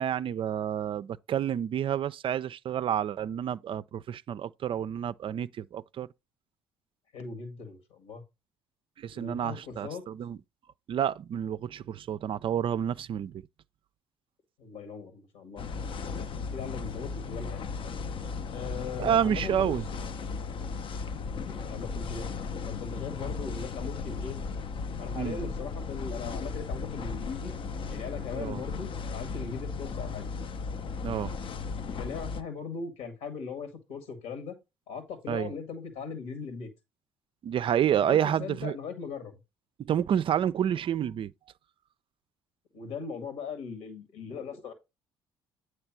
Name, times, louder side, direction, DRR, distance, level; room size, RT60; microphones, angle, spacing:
voice 1, 0.0-6.1 9.0-10.4 10.9-13.4 19.0-19.8 25.1-25.4 28.4-28.6 31.0-31.3 35.3-35.5 37.4-38.8 39.8-41.3, right 9 dB, 45° right, 0.4 m, -29 dB
voice 2, 7.1-8.2 9.1-10.0 14.6-15.6 16.5-17.7 18.5-19.7 20.9-21.1 21.5-22.3 22.6-24.4 25.0-27.5 27.9-30.3 32.0-34.6 34.9-36.7 37.9-39.4 42.7-44.7, left 5 dB, 70° left, 1.9 m, -39 dB
sound 1, 15.6-32.4, left 5 dB, 45° left, 0.6 m, -36 dB
8.7 x 3.2 x 6.0 m
hypercardioid pair, 50°, 13 cm